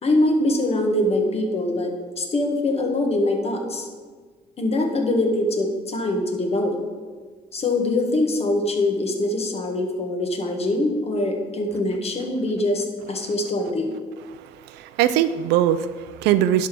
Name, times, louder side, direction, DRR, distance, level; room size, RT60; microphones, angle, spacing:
voice 1, 0.0-3.9 4.6-6.8 7.5-13.9, left 1 dB, 35° left, 2 dB, 1.6 m, -23 dB
voice 2, 14.4-16.7, right 11 dB, 90° right, 12 dB, 0.5 m, -21 dB
11.0 x 3.6 x 6.1 m, 1.5 s
cardioid pair, 110°, 17 cm